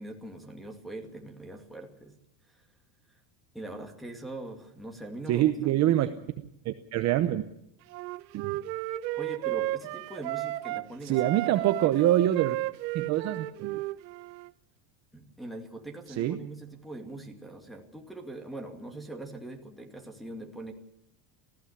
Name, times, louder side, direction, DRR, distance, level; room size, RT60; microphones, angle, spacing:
voice 1, 0.0-2.2 2.5-2.6 3.5-6.2 9.2-11.4 12.0-12.1 15.1-20.7, right 2 dB, ahead, 0 dB, 2.3 m, -42 dB
voice 2, 5.3-6.1 6.6-7.4 8.3-8.5 11.0-12.6 12.9-13.8 16.2-16.5, right 13 dB, 35° right, 9 dB, 0.8 m, -25 dB
Wind instrument woodwind instrument, 7.9-10.8 11.1-14.5, right 18 dB, 85° right, 1.1 m, -33 dB
19.0 x 15.5 x 9.9 m, 0.81 s
cardioid pair, 165°, 50 cm